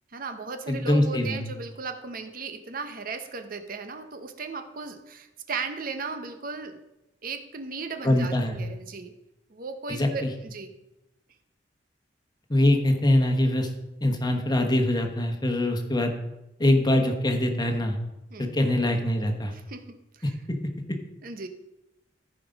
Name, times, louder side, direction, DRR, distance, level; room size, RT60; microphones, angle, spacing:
voice 1, 0.1-6.8 7.2-9.1 9.5-10.7 18.3-18.5 19.5-20.3 21.2-21.5, right 4 dB, 55° right, 7 dB, 0.8 m, -36 dB
voice 2, 0.7-1.4 8.0-8.5 9.9-10.3 12.5-13.7 14.0-16.1 16.6-18.0 18.4-19.5, left 1 dB, 25° left, 4 dB, 1.1 m, -23 dB
14.0 x 5.1 x 5.2 m, 0.94 s
head